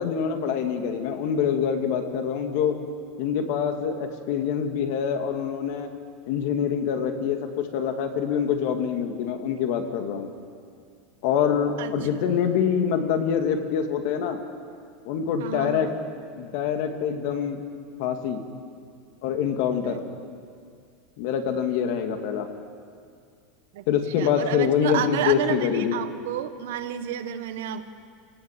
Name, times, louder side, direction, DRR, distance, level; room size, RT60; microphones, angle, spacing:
voice 1, 0.0-2.8 3.2-5.9 6.3-10.3 11.2-14.4 15.1-15.9 16.4-17.6 18.0-18.4 19.2-20.0 21.2-22.5 23.9-25.9, left 7 dB, 55° left, 5 dB, 2.5 m, -25 dB
voice 2, 11.8-12.2 12.6-12.8 15.4-15.9 19.8-20.0 23.7-23.8 24.2-27.8, right 10 dB, 80° right, 9 dB, 1.6 m, -31 dB
29.0 x 18.5 x 7.6 m, 2.2 s
supercardioid pair, 160°, 0 cm